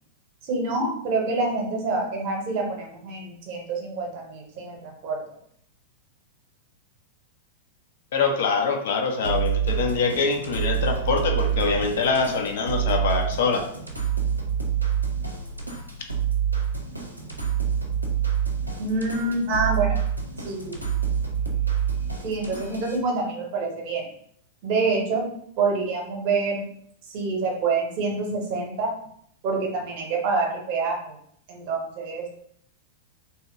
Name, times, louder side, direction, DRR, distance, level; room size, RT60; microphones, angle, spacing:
voice 1, 0.4-5.2 18.8-20.0 20.4-20.8 22.2-24.0 24.6-25.2 25.6-26.7 27.1-28.9 29.4-31.1 31.5-32.3, right 3 dB, 45° right, 1 dB, 0.8 m, -26 dB
voice 2, 8.1-13.6, left 4 dB, 55° left, 4 dB, 0.5 m, -24 dB
sound 1, 9.2-23.0, right 8 dB, 90° right, 0.5 m, -27 dB
2.8 x 2.8 x 2.5 m, 0.66 s
figure-of-eight pair, 95°, 0 cm